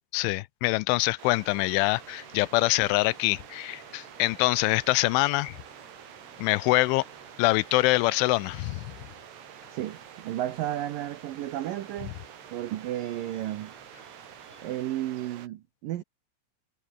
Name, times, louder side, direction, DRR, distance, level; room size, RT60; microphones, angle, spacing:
voice 1, 0.1-5.6 6.4-7.0 7.4-8.9, left 21 dB, 85° left, 3.1 m, -24 dB
sound 1, 1.2-15.5, right 11 dB, 65° right, 3.7 m, -48 dB
sound 2, 1.6-14.8, left 6 dB, 40° left, 2.4 m, -57 dB
voice 2, 9.7-12.1 12.5-13.7 14.6-16.0, right 13 dB, 85° right, 1.9 m, -33 dB
omnidirectional pair, 5.5 m